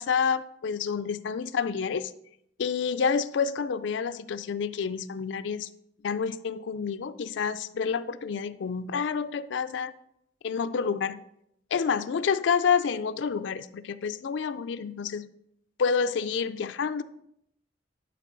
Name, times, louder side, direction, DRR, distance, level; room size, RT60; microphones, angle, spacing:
voice 1, 0.0-2.1 2.6-5.7 6.0-9.9 10.4-11.2 11.7-15.3 15.8-17.0, left 6 dB, 70° left, 13 dB, 0.4 m, -28 dB
11.0 x 4.6 x 3.9 m, 0.75 s
head